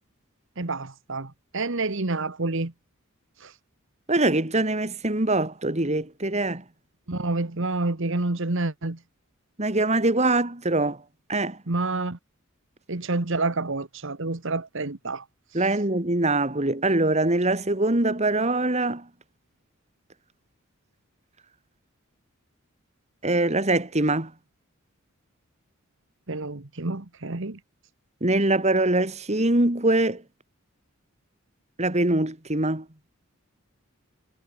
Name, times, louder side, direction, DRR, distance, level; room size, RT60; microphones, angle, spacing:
voice 1, 0.6-2.7 3.4-3.5 7.1-9.0 11.7-12.2 12.9-15.2 26.3-27.6, right 2 dB, 60° right, 1.5 m, -28 dB
voice 2, 4.1-6.6 9.6-11.0 11.3-11.6 15.5-19.1 23.2-24.3 28.2-30.2 31.8-32.9, right 2 dB, 30° right, 2.5 m, -23 dB
head